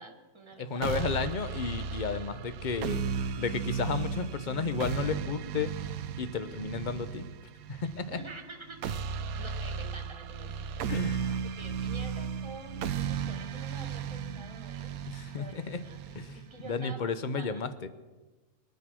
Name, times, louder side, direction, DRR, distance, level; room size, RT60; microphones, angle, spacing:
voice 1, 0.0-1.0 7.8-9.0 9.3-10.9 11.2-15.0 15.3-15.6 15.8-16.0 16.5-17.6, right 3 dB, 20° right, 4 dB, 1.7 m, -48 dB
voice 2, 0.6-5.7 6.2-7.3 7.7-8.2 10.9-11.4 15.1-15.8 16.1-17.9, left 5 dB, 40° left, 12 dB, 0.7 m, -33 dB
sound 1, 0.8-16.8, right 7 dB, 70° right, 1.1 m, -35 dB
22.0 x 9.3 x 6.2 m, 1.2 s
omnidirectional pair, 1.6 m